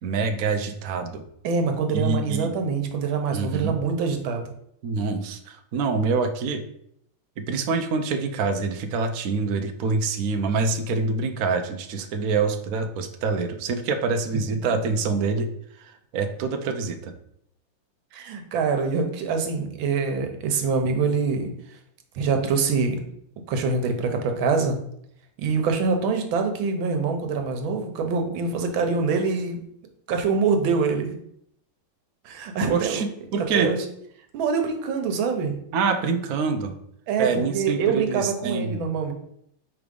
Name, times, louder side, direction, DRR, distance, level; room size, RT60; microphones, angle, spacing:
voice 1, 0.0-1.2 1.9-2.5 3.3-3.8 4.8-6.6 7.4-15.5 15.8-17.1 32.7-33.1 33.3-33.7 35.7-36.7 37.2-38.8, right 4 dB, 65° right, 6 dB, 0.9 m, -26 dB
voice 2, 1.4-4.5 18.1-21.5 22.1-23.0 23.5-24.8 25.4-29.6 30.1-31.2 32.2-33.0 33.5-33.8 34.3-35.6 37.1-39.1, right 5 dB, 85° right, 5 dB, 1.6 m, -25 dB
4.8 x 3.9 x 5.2 m, 0.72 s
omnidirectional pair, 2.1 m